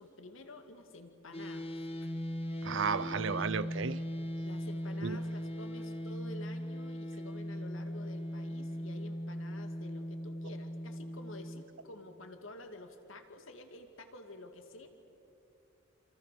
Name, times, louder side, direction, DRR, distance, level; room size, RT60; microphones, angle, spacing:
voice 1, 0.0-1.9 4.4-14.9, left 2 dB, 70° left, 6 dB, 2.3 m, -50 dB
sound 1, 1.3-11.6, equal, 30° left, 1.4 m, -39 dB
voice 2, 2.6-4.0 5.0-5.2, right 5 dB, 60° right, 16 dB, 0.6 m, -33 dB
27.5 x 27.0 x 6.8 m, 2.8 s
head